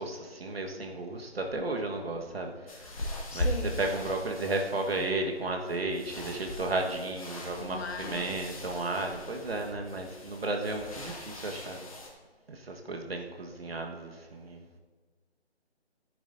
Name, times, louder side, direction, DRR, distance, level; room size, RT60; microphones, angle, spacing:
voice 1, 0.0-3.5 3.8-11.9 12.5-14.8, right 2 dB, 65° right, 2 dB, 1.6 m, -34 dB
sound 1, 2.7-12.1, left 1 dB, 30° left, 1.3 m, -39 dB
voice 2, 3.3-3.8 7.6-8.4, left 4 dB, 75° left, 6 dB, 1.5 m, -38 dB
14.0 x 10.0 x 2.7 m, 1.4 s
figure-of-eight pair, 165°, 33 cm